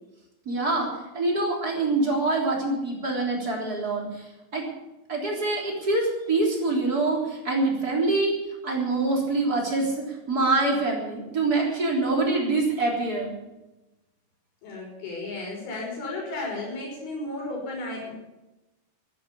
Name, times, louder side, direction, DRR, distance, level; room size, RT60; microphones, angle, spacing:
voice 1, 0.5-0.9 1.1-4.3 4.5-4.7 5.1-8.3 8.6-13.3, right 2 dB, 25° right, -1 dB, 3.7 m, -25 dB
voice 2, 14.6-18.1, left 2 dB, 90° left, -2 dB, 7.4 m, -34 dB
14.5 x 10.0 x 8.5 m, 1.0 s
omnidirectional pair, 4.3 m